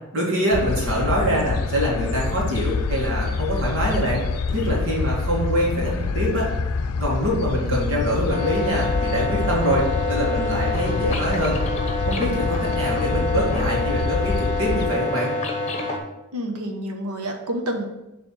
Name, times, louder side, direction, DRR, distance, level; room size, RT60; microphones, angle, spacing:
voice 1, 0.1-6.5 7.0-11.6 12.1-15.3, equal, 65° right, -3 dB, 2.0 m, -24 dB
sound 1, 0.5-14.9, left 4 dB, 85° left, 0.5 m, -26 dB
sound 2, 8.3-16.0, left 3 dB, 30° left, 1.0 m, -27 dB
voice 2, 16.3-17.8, equal, 90° right, 3 dB, 1.1 m, -28 dB
7.0 x 3.4 x 5.5 m, 0.94 s
head